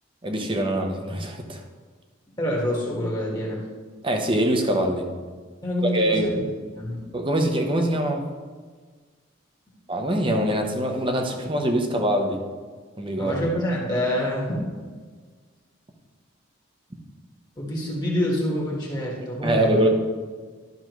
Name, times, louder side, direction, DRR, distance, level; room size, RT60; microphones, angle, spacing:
voice 1, 0.2-1.6 4.0-5.1 5.8-6.4 7.1-8.3 9.9-12.4 13.0-13.3 19.4-19.9, right 1 dB, 25° right, 3 dB, 0.9 m, -23 dB
voice 2, 2.4-3.6 5.6-6.4 6.7-7.0 13.2-14.6 17.6-19.9, equal, 20° left, -3 dB, 1.5 m, -26 dB
12.0 x 6.4 x 3.0 m, 1.5 s
head